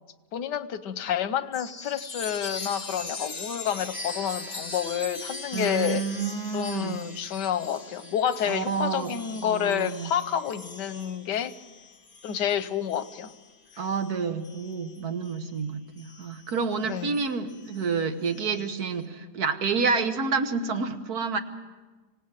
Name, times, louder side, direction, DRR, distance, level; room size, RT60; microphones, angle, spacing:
voice 1, 0.3-6.0 6.5-11.5 12.2-13.3 16.9-17.2, left 9 dB, 90° left, 13 dB, 1.5 m, -29 dB
Chime, 1.5-15.5 16.0-18.8, left 3 dB, 25° left, 1.3 m, -41 dB
voice 2, 5.5-7.0 8.5-9.1 9.4-10.1 13.8-21.4, right 5 dB, 65° right, 7 dB, 1.7 m, -29 dB
25.5 x 18.0 x 7.5 m, 1.3 s
omnidirectional pair, 1.8 m